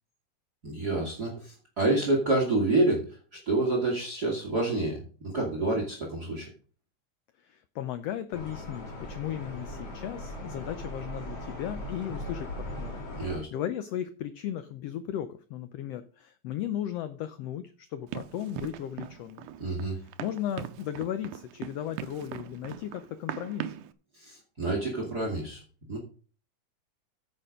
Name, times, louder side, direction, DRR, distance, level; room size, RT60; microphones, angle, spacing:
voice 1, 0.6-3.0 3.3-6.5 13.2-13.5 19.6-20.0 24.2-25.6 25.9-26.0, right 2 dB, 35° right, 0 dB, 2.3 m, -28 dB
voice 2, 7.4-13.0 13.3-19.5 19.9-23.7, left 11 dB, 85° left, 12 dB, 1.4 m, -36 dB
sound 1, 8.3-13.4, left 1 dB, 50° left, 3.5 m, -39 dB
Run, 18.1-23.9, right 11 dB, 85° right, 2.1 m, -40 dB
9.9 x 6.7 x 5.1 m, 0.40 s
omnidirectional pair, 3.6 m